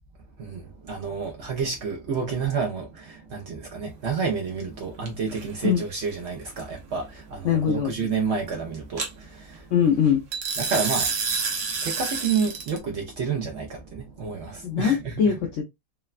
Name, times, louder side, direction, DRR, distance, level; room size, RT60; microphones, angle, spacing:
voice 1, 0.4-9.9 10.6-15.4, right 5 dB, 80° right, 0.6 m, -30 dB
sound 1, 5.1-5.4 9.0-9.1 10.3-12.8, right 5 dB, 55° right, 0.9 m, -28 dB
voice 2, 7.4-7.9 9.7-10.2 14.6-15.6, left 7 dB, 80° left, 0.6 m, -22 dB
3.2 x 2.1 x 2.3 m
omnidirectional pair, 1.9 m